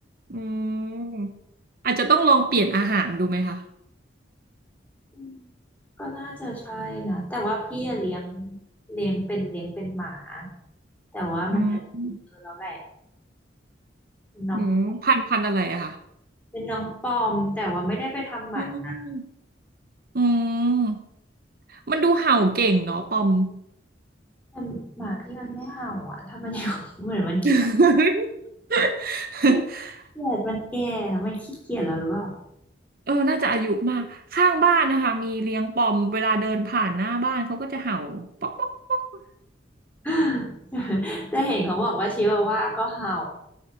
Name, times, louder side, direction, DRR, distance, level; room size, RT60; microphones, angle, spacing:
voice 1, 0.3-1.3 1.8-3.6 11.5-12.2 14.5-16.0 18.6-19.2 20.1-21.0 21.9-23.5 27.4-28.3 28.7-29.9 33.1-39.0, right 3 dB, 50° right, 7 dB, 0.8 m, -23 dB
voice 2, 5.1-5.4 6.0-8.6 8.9-10.5 11.1-11.8 12.3-12.8 14.4-14.7 16.5-19.0 24.5-27.6 29.5-29.6 30.1-32.3 40.0-43.2, equal, 10° left, -3 dB, 3.3 m, -28 dB
9.1 x 5.9 x 7.0 m, 0.77 s
head